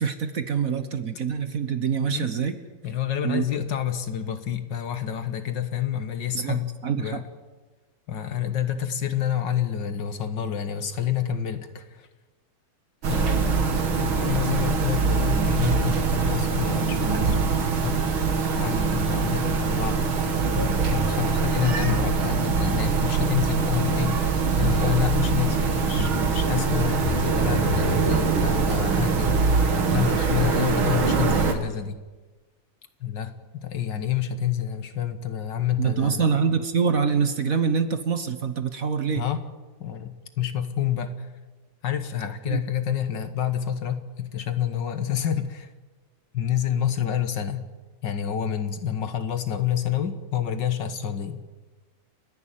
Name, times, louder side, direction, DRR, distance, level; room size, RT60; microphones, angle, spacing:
voice 1, 0.0-2.6 3.2-3.4 6.3-7.2 35.8-39.2 42.5-42.6, right 6 dB, 50° right, 10 dB, 1.4 m, -25 dB
voice 2, 2.8-7.2 8.1-12.1 13.1-17.4 17.8-18.0 18.5-20.3 20.5-32.0 33.0-36.3 39.1-39.5 39.8-41.3 41.8-45.7 46.3-47.7 48.0-51.4, left 9 dB, 65° left, 10 dB, 2.0 m, -28 dB
sound 1, 13.0-31.5, right 4 dB, 90° right, 2.7 m, -23 dB
30.0 x 11.0 x 9.2 m, 1.3 s
omnidirectional pair, 2.2 m